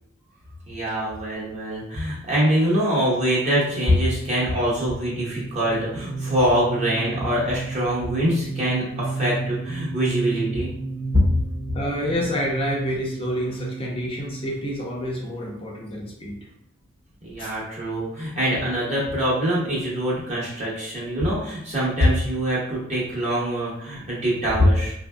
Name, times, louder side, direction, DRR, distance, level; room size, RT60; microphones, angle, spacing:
voice 1, 0.7-10.7 11.1-11.2 17.2-24.9, equal, 35° right, -7 dB, 1.2 m, -23 dB
sound 1, 3.9-16.1, right 3 dB, 20° right, 0.6 m, -34 dB
voice 2, 11.7-16.4 17.4-17.6, equal, 30° left, -3 dB, 0.6 m, -28 dB
3.9 x 2.6 x 2.2 m, 0.75 s
head